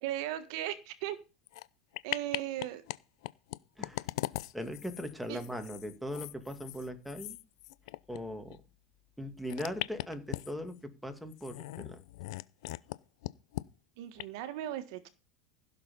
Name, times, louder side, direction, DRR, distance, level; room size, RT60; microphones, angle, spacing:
voice 1, 0.0-1.2 2.0-2.8 5.3-5.4 14.0-15.1, right 13 dB, 70° right, 11 dB, 1.6 m, -37 dB
sound 1, 1.5-1.7 1.9-3.0 3.2-8.2 8.5-8.6 9.4-10.7 11.3-13.0 13.2-13.6 14.2-14.3, left 18 dB, 75° left, 0.6 m, -39 dB
voice 2, 4.5-7.4 8.1-8.6 9.2-12.0, equal, ahead, 7 dB, 2.3 m, -39 dB
15.5 x 6.8 x 5.3 m, 0.31 s
supercardioid pair, 125°, 3 cm